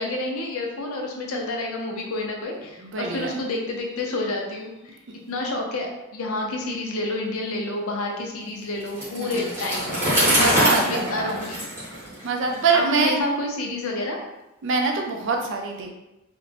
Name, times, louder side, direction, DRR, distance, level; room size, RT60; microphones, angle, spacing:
voice 1, 0.0-5.0 5.3-10.0 10.2-11.6 12.5-14.2, left 2 dB, 75° left, 0 dB, 0.5 m, -29 dB
voice 2, 2.8-3.3 9.2-9.5 10.3-11.4 11.9-13.3 14.6-15.9, right 4 dB, 55° right, 2 dB, 0.4 m, -25 dB
Bicycle, 8.9-12.7, equal, 10° right, 0.8 m, -24 dB
2.4 x 2.1 x 3.2 m, 0.94 s
head